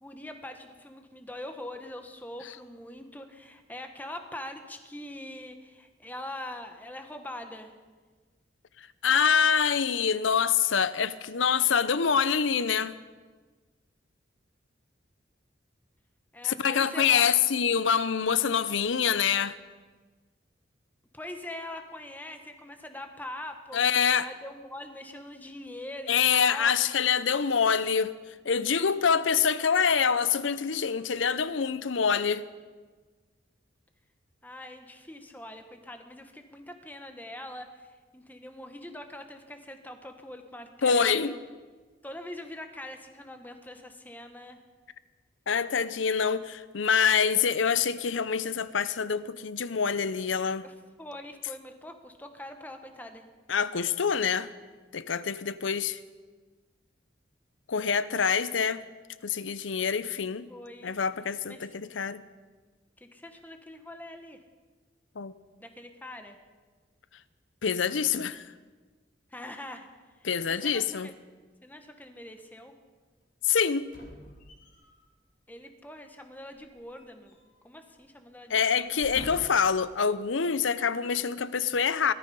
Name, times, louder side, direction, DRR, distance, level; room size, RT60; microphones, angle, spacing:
voice 1, 0.0-7.7 16.3-17.3 21.1-23.8 24.2-26.8 34.4-41.4 42.0-44.6 50.6-53.3 60.5-60.9 61.5-61.9 63.0-64.4 65.6-66.4 69.3-69.9 70.5-71.1 71.6-72.7 75.5-77.4 77.6-79.1, left 1 dB, 10° left, 1.1 m, -43 dB
voice 2, 8.8-13.0 16.4-19.6 23.7-24.3 26.1-28.1 28.4-32.5 40.8-41.3 45.5-50.6 53.5-54.5 54.9-56.0 57.7-58.8 59.2-60.5 60.8-62.2 65.2-65.3 67.6-68.4 70.2-71.1 73.4-73.9 78.5-82.1, left 6 dB, 90° left, 0.7 m, -26 dB
sound 1, 73.8-75.0 76.6-77.7 78.0-78.2 78.8-79.7 80.4-80.5, left 1 dB, 45° left, 3.1 m, -46 dB
17.5 x 13.5 x 5.4 m
head